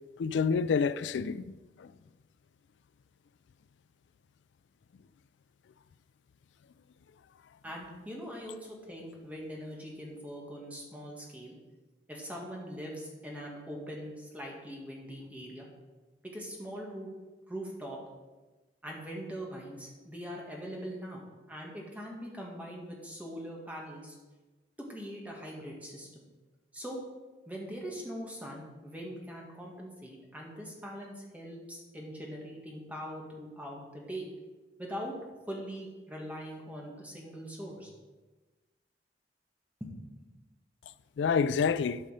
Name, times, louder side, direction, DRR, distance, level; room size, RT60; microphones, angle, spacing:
voice 1, 0.2-1.5 1.8-1.9 41.2-42.0, left 5 dB, 90° left, 0.3 m, -28 dB
voice 2, 7.6-11.6 12.1-15.7 16.3-17.1 17.5-18.0 18.8-24.2 24.8-26.3 26.7-27.0 27.5-34.3 34.8-35.1 35.5-37.9 39.8-39.9 40.2-40.3, equal, 10° right, 1.9 m, -42 dB
12.0 x 5.5 x 5.1 m
head